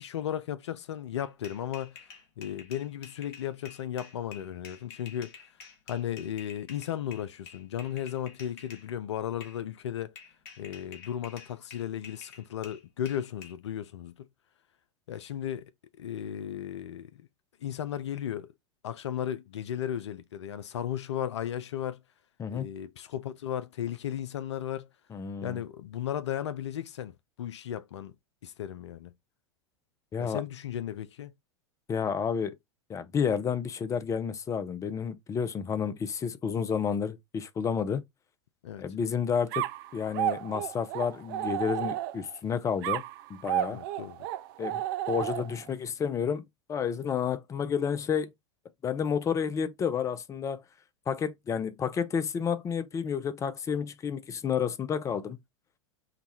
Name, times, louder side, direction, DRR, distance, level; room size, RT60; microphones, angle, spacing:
voice 1, 0.0-2.1 2.4-5.3 5.9-10.1 10.6-14.1 15.1-15.7 16.0-17.3 17.6-18.5 18.8-22.0 22.5-24.9 25.4-27.1 27.4-28.1 28.4-29.1 30.2-31.3 38.6-38.9 43.7-44.2, left 10 dB, 70° left, 0.4 m, -35 dB
sound 1, 1.2-8.9 9.4-9.6 10.1-13.5, left 6 dB, 55° left, 1.4 m, -49 dB
voice 2, 25.1-25.6 30.1-30.4 31.9-32.6 32.9-38.0 38.8-39.6 39.9-43.0 43.3-43.8 44.6-44.8 45.1-46.4 46.7-48.3 48.8-50.6 51.1-55.4, left 7 dB, 20° left, 0.5 m, -30 dB
sound 2, 39.5-42.4 42.8-45.7, right 13 dB, 50° right, 0.4 m, -32 dB
5.8 x 2.3 x 2.8 m
figure-of-eight pair, 90°, 15 cm